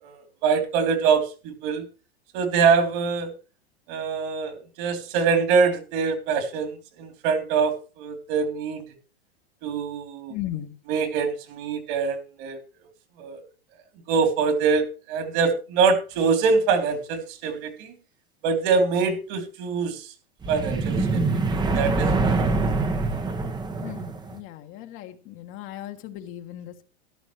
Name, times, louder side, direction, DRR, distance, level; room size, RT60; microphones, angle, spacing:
voice 1, 0.0-1.8 2.3-3.3 3.9-6.7 7.0-8.8 9.6-10.3 10.9-12.6 13.2-13.4 14.1-17.9 18.4-20.1 20.5-22.5, right 5 dB, 50° right, 6 dB, 3.2 m, -24 dB
voice 2, 10.3-10.8 21.0-21.3 23.8-26.8, left 13 dB, 40° left, 6 dB, 1.5 m, -37 dB
sound 1, 20.4-24.4, right 3 dB, 15° right, 1.1 m, -24 dB
14.0 x 11.5 x 3.2 m, 0.33 s
supercardioid pair, 130°, 31 cm